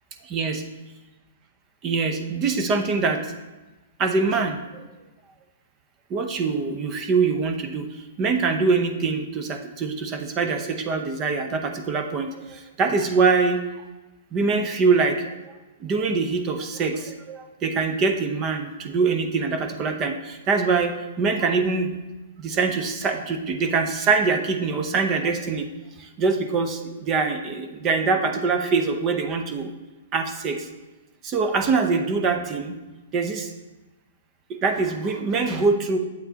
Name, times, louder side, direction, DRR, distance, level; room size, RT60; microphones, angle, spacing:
voice 1, 0.2-0.6 1.8-3.3 4.0-4.9 6.1-13.6 14.3-15.5 15.8-22.0 22.4-25.7 26.0-29.7 30.1-30.7 31.2-32.7 33.1-33.5 34.5-36.0, right 4 dB, 30° right, 6 dB, 0.8 m, -24 dB
8.9 x 7.8 x 2.9 m, 1.1 s
hypercardioid pair, 125°, 0 cm